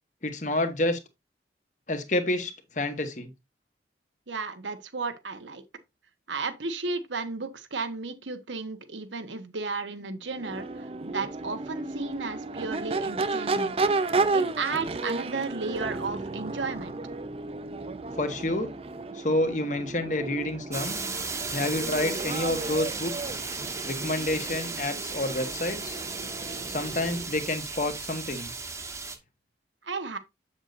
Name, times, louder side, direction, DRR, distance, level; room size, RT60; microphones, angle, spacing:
voice 1, 0.2-1.0 1.9-3.3 18.2-18.7 19.1-21.0 21.5-23.1 23.9-26.0 26.7-28.5, left 1 dB, 45° left, 1.3 m, -29 dB
voice 2, 4.3-5.6 6.3-13.8 14.3-17.0 29.8-30.2, right 4 dB, 90° right, 1.2 m, -34 dB
Crowd / Race car auto racing / Accelerating revving vroom, 10.3-27.4, right 3 dB, 30° right, 0.5 m, -33 dB
sound 1, 20.7-29.2, right 4 dB, 15° right, 1.1 m, -35 dB
8.0 x 7.3 x 2.6 m
head